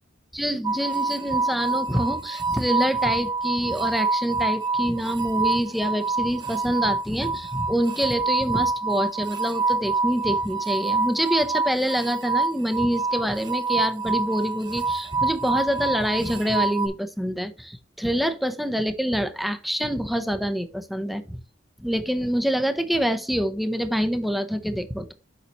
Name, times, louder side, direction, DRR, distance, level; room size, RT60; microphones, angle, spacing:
voice 1, 0.3-21.4 21.8-25.1, equal, ahead, 0.6 m, -26 dB
sound 1, 0.6-16.9, right 3 dB, 25° right, 0.9 m, -26 dB
6.9 x 5.6 x 3.0 m
head